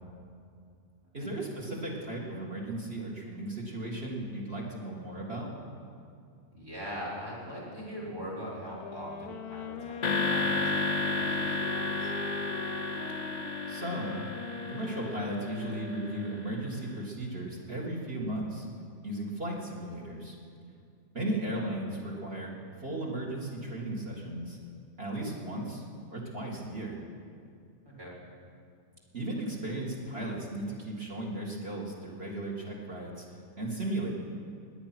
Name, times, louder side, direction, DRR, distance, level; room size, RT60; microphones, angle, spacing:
voice 1, 1.1-5.5 13.7-14.2 14.7-18.7 19.0-20.4 21.1-22.5 22.8-24.6 25.0-25.8 26.1-27.0 29.1-33.2 33.6-34.1, right 1 dB, 40° right, -2 dB, 2.2 m, -36 dB
voice 2, 6.5-10.0 10.3-12.1 28.0-28.1, equal, 65° right, -7 dB, 5.1 m, -41 dB
sound 1, 8.8-16.8, left 5 dB, 80° left, 1.3 m, -42 dB
sound 2, 10.0-16.4, left 2 dB, 35° left, 0.8 m, -32 dB
20.5 x 9.3 x 6.1 m, 2.4 s
omnidirectional pair, 1.6 m